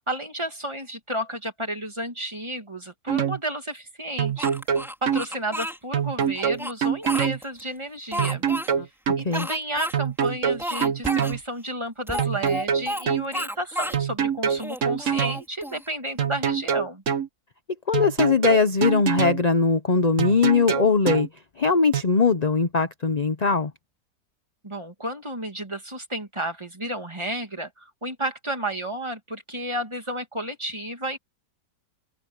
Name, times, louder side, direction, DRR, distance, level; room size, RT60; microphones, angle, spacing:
voice 1, 0.1-4.5 5.0-8.5 9.2-17.0 24.6-31.2, right 1 dB, 15° right, 2.1 m, -32 dB
sound 1, 3.1-3.4 4.2-5.2 5.9-7.4 8.2-9.3 9.9-11.4 12.2-13.3 13.9-15.4 16.2-17.3 17.9-19.4 20.2-21.3 21.9-22.0, right 7 dB, 50° right, 1.3 m, -24 dB
Speech, 4.4-5.8 6.4-7.6 8.1-8.7 9.3-9.9 10.2-10.3 10.6-11.4 12.1-13.1 13.3-14.0 14.5-15.9, equal, ahead, 4.4 m, -32 dB
voice 2, 17.9-21.3 21.6-23.7, left 4 dB, 35° left, 0.7 m, -20 dB
open air
omnidirectional pair, 1.8 m